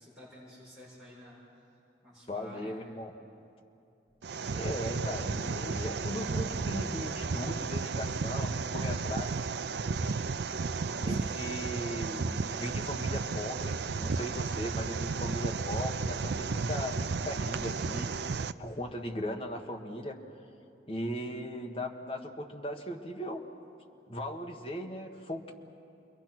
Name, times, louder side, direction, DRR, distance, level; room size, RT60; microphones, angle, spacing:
voice 1, 0.0-1.4 2.0-2.8 11.0-11.7, left 1 dB, ahead, -10 dB, 7.2 m, -51 dB
voice 2, 2.3-3.1 4.5-9.4 11.0-18.1 18.6-20.2 20.9-23.4 24.1-25.5, equal, 30° left, 1 dB, 1.5 m, -38 dB
sound 1, 4.1-8.6 9.6-9.7 10.1-19.2, right 1 dB, 20° right, 0.5 m, -53 dB
sound 2, 4.2-18.5, right 4 dB, 65° right, 0.5 m, -33 dB
29.0 x 22.5 x 6.1 m, 2.7 s
head